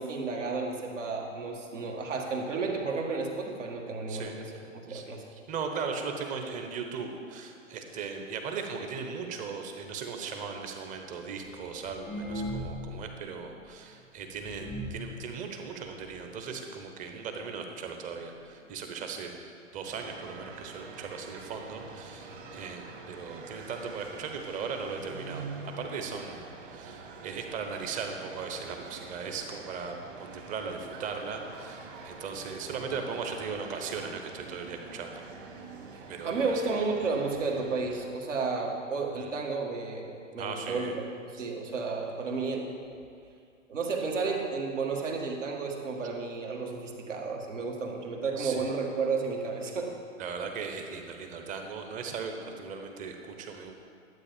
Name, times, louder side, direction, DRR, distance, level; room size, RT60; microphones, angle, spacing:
voice 1, 0.0-5.2 36.2-41.0 41.4-42.7 43.7-49.9, right 4 dB, 65° right, 0 dB, 1.9 m, -32 dB
voice 2, 5.3-19.3 19.7-35.2 36.1-36.3 39.1-39.3 40.4-40.9 41.4-41.5 48.4-48.7 50.2-53.7, right 5 dB, 20° right, 4 dB, 1.0 m, -38 dB
sound 1, 11.4-13.1 13.4-13.5 14.0-14.1 14.5-15.1 15.9-16.0 16.2-16.3 16.6-16.9 17.7-17.8 18.1-18.2 18.8-18.9 19.2-19.3, equal, 5° left, 0.4 m, -38 dB
sound 2, 19.8-38.1, right 4 dB, 40° right, 1.9 m, -46 dB
12.0 x 8.2 x 5.2 m, 2.4 s
figure-of-eight pair, 110°, 39 cm